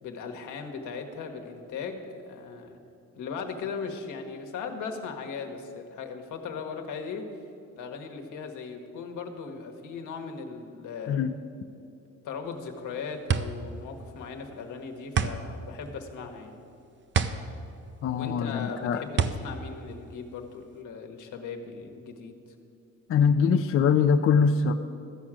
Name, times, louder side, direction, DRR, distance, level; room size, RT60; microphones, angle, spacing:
voice 1, 0.0-2.8 3.2-7.3 7.7-11.2 12.2-16.6 18.1-22.3, left 5 dB, 80° left, 4 dB, 1.3 m, -38 dB
sound 1, 12.5-20.8, right 6 dB, 40° right, 0.6 m, -30 dB
voice 2, 18.0-19.0 23.1-24.7, left 6 dB, 45° left, 6 dB, 0.5 m, -23 dB
13.5 x 4.9 x 8.9 m, 2.6 s
cardioid pair, 90°, 30 cm